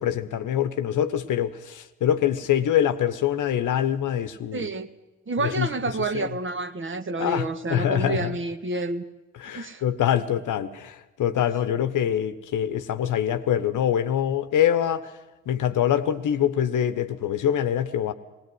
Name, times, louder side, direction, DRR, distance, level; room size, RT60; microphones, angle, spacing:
voice 1, 0.0-4.7 5.4-5.7 6.1-6.3 7.2-8.3 9.4-15.1 15.5-18.1, left 10 dB, 50° left, 11 dB, 1.2 m, -24 dB
voice 2, 4.5-4.9 5.3-9.0 9.5-9.8, right 3 dB, 30° right, 10 dB, 1.4 m, -29 dB
19.5 x 18.0 x 7.9 m, 1.1 s
figure-of-eight pair, 40°, 38 cm